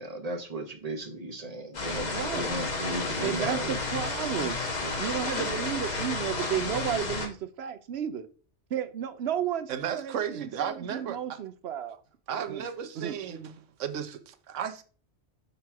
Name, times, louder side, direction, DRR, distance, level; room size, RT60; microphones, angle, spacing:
voice 1, 0.0-3.7 4.8-4.9, right 1 dB, 35° right, 1.1 m, -36 dB
sound 1, 1.7-7.3, left 3 dB, 40° left, 1.1 m, -31 dB
voice 2, 2.1-2.5 3.2-4.6 5.0-8.3 8.7-12.0 12.5-12.6 13.0-13.1, right 9 dB, 65° right, 0.8 m, -33 dB
voice 3, 9.7-11.4 12.3-13.5 13.8-14.8, right 8 dB, 90° right, 1.0 m, -34 dB
6.7 x 3.1 x 5.7 m
omnidirectional pair, 1.2 m